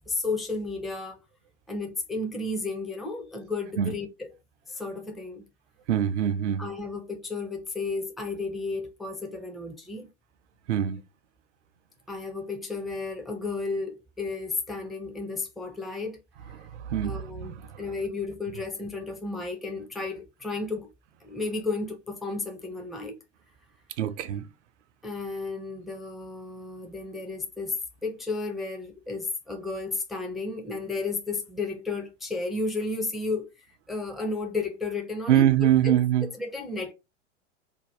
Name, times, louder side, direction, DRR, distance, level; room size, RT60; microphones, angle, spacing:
voice 1, 0.1-1.2 1.7-4.3 4.7-5.5 6.6-10.1 12.1-16.2 17.0-20.9 21.2-23.1 25.0-33.5 33.9-35.5 35.8-36.0 36.2-36.9, left 3 dB, ahead, 0.4 m, -33 dB
voice 2, 5.9-6.7 10.7-11.0 16.6-17.8 24.0-24.5 35.3-36.3, right 10 dB, 70° right, 0.5 m, -24 dB
2.7 x 2.2 x 3.2 m
figure-of-eight pair, 90°, 36 cm